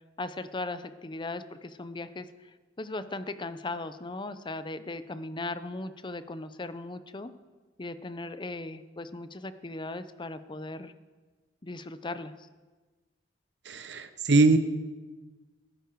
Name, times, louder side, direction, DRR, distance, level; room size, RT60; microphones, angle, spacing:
voice 1, 0.2-2.5 2.8-7.3 7.8-10.9 11.6-12.3, left 2 dB, 25° left, 12 dB, 0.7 m, -38 dB
voice 2, 13.7-14.6, right 3 dB, 90° right, 10 dB, 1.0 m, -22 dB
20.0 x 11.5 x 4.7 m, 1.3 s
head